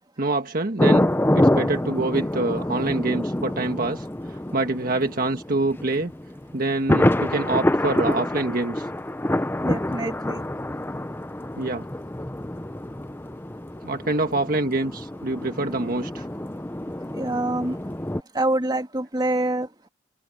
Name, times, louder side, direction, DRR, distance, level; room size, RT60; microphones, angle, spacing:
voice 1, 0.2-1.1 1.3-4.1 4.5-6.1 6.5-8.9 11.6-11.8 13.8-16.3, right 2 dB, 50° right, 1.5 m, -25 dB
sound 1, 0.8-18.2, left 1 dB, 10° left, 0.7 m, -26 dB
voice 2, 9.6-10.4 17.1-17.8 18.3-19.7, right 1 dB, 25° right, 3.0 m, -25 dB
head